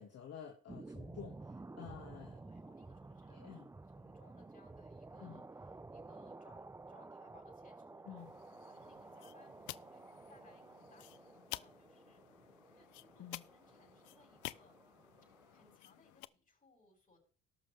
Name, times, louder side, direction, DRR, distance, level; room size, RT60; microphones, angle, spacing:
voice 1, 0.0-2.4 3.3-3.7 5.2-5.4 8.0-8.3 13.2-13.4, left 8 dB, 55° left, 1 dB, 1.7 m, -51 dB
sound 1, 0.7-15.8, right 3 dB, 10° right, 0.4 m, -53 dB
voice 2, 2.4-3.6 3.9-8.3 8.7-14.8 15.5-17.2, left 3 dB, 30° left, -3 dB, 6.8 m, -67 dB
sound 2, 8.2-16.3, left 19 dB, 80° left, 0.5 m, -52 dB
18.5 x 6.5 x 3.3 m, 0.42 s
supercardioid pair, 70°, 30 cm